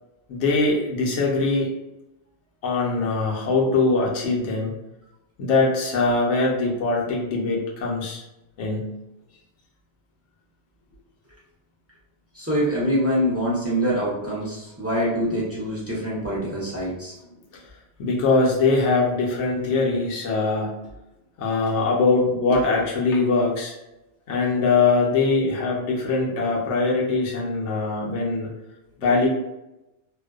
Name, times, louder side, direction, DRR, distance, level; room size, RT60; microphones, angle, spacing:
voice 1, 0.3-1.7 2.6-4.7 5.4-8.2 8.6-8.9 18.0-20.8 21.4-23.8 24.3-28.5 29.0-29.3, left 3 dB, 75° left, -3 dB, 1.0 m, -22 dB
voice 2, 12.3-17.1 29.0-29.1, equal, 15° right, -8 dB, 0.5 m, -25 dB
2.5 x 2.1 x 2.3 m, 0.94 s
omnidirectional pair, 1.2 m